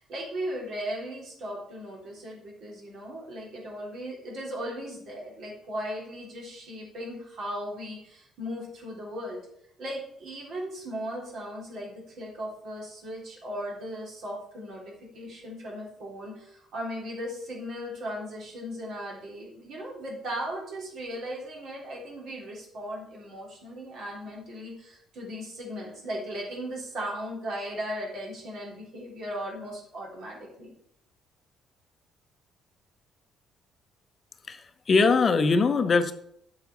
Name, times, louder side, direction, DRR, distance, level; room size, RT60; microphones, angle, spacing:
voice 1, 0.0-9.4 9.8-30.7, equal, 60° right, -3 dB, 3.5 m, -37 dB
voice 2, 34.5-36.1, left 4 dB, 40° left, 10 dB, 0.7 m, -22 dB
8.0 x 5.8 x 5.5 m, 0.73 s
figure-of-eight pair, 45°, 0 cm